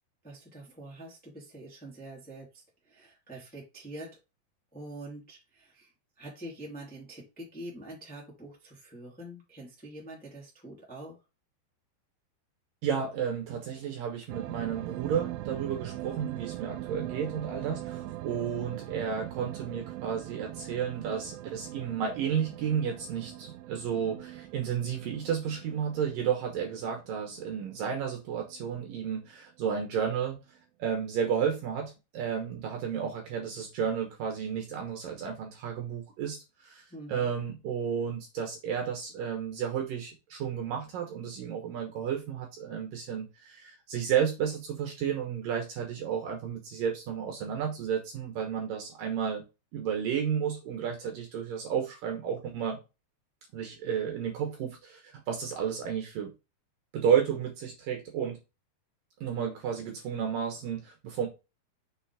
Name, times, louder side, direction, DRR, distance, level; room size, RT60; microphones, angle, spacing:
voice 1, 0.2-4.2 4.7-5.9 6.2-11.2 36.9-37.3, right 1 dB, 5° left, -3 dB, 1.5 m, -45 dB
voice 2, 12.8-30.4 30.8-36.4 36.6-36.8 37.1-49.4 49.7-52.8 53.5-56.3 56.9-58.4 59.2-61.3, right 8 dB, 65° right, 3 dB, 2.4 m, -32 dB
sound 1, 14.3-28.9 29.2-29.3, right 15 dB, 90° right, 2.7 m, -41 dB
6.6 x 5.3 x 3.4 m, 0.26 s
omnidirectional pair, 4.8 m